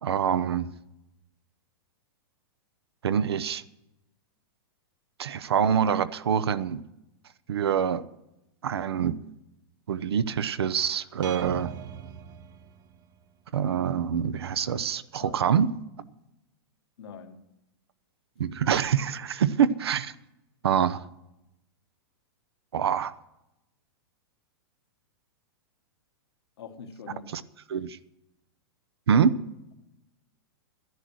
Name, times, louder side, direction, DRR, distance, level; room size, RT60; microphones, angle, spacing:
voice 1, 0.0-0.7 3.0-3.6 5.2-6.8 7.5-8.0 8.6-9.2 9.9-11.7 13.5-15.7 18.4-20.1 20.6-21.1 22.7-23.1 27.3-27.4 27.7-28.0 29.1-29.4, right 8 dB, 90° right, 0.8 m, -25 dB
sound 1, 11.2-13.2, right 8 dB, 30° right, 0.7 m, -40 dB
voice 2, 17.0-17.4 26.6-27.3, left 6 dB, 80° left, 1.6 m, -43 dB
12.0 x 11.0 x 6.3 m
hypercardioid pair, 135°, 13 cm